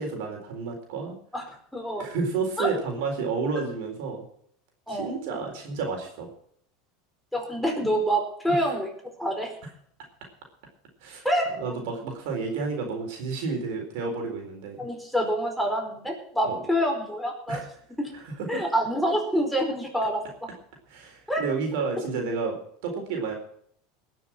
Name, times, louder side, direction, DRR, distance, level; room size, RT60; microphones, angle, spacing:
voice 1, 0.0-1.2 2.0-4.3 4.9-6.3 8.5-8.7 11.0-11.3 11.6-14.9 16.4-16.6 17.5-17.7 18.2-18.6 20.9-22.6 22.8-23.3, right 4 dB, 65° right, 2 dB, 4.1 m, -31 dB
voice 2, 1.7-2.0 2.6-2.7 4.9-5.1 7.3-8.9 9.2-9.5 11.2-11.5 14.8-17.6 18.0-18.1 18.5-20.2 21.3-21.4, equal, ahead, 1 dB, 4.6 m, -26 dB
20.5 x 7.0 x 6.1 m, 0.65 s
hypercardioid pair, 85°, 0 cm